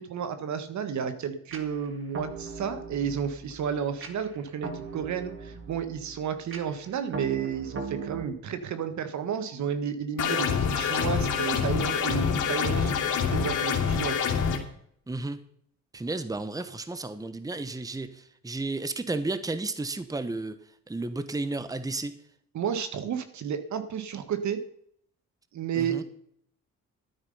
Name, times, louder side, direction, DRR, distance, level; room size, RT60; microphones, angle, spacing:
voice 1, 0.0-14.4 22.5-24.6 25.5-26.0, right 7 dB, 70° right, 10 dB, 1.6 m, -32 dB
sound 1, 1.5-8.3, right 4 dB, 45° right, 2.1 m, -40 dB
sound 2, 10.2-14.6, left 6 dB, 75° left, 2.8 m, -26 dB
voice 2, 15.1-15.4 15.9-20.6 20.9-22.2 25.8-26.0, right 2 dB, 10° right, 12 dB, 1.1 m, -33 dB
12.5 x 9.6 x 5.5 m, 0.68 s
cardioid pair, 90°, 30 cm